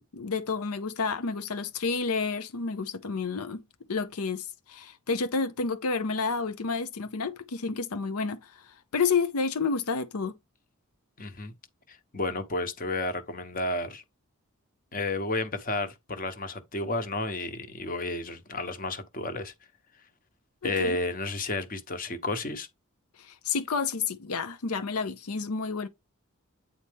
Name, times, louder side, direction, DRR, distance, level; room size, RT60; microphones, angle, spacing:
voice 1, 0.1-3.6 3.9-10.3 20.6-21.0 23.2-25.9, left 4 dB, 85° left, 0.7 m, -30 dB
voice 2, 11.2-11.5 11.9-14.0 14.9-19.5 20.6-22.7, left 2 dB, 40° left, 1.1 m, -32 dB
8.6 x 4.2 x 3.5 m
head